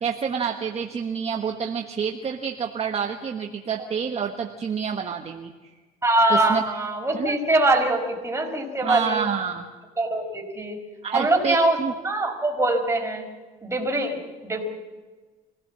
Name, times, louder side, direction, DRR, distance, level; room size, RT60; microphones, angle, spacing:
voice 1, 0.0-5.5 6.3-6.6 7.1-7.4 8.8-9.7 11.0-11.9, right 7 dB, 40° right, 3 dB, 1.4 m, -28 dB
voice 2, 6.0-9.2 10.0-10.8 11.1-11.8 12.0-13.2 13.6-14.6, right 2 dB, 15° right, 2 dB, 5.0 m, -23 dB
25.5 x 16.0 x 7.5 m, 1.3 s
cardioid pair, 110°, 17 cm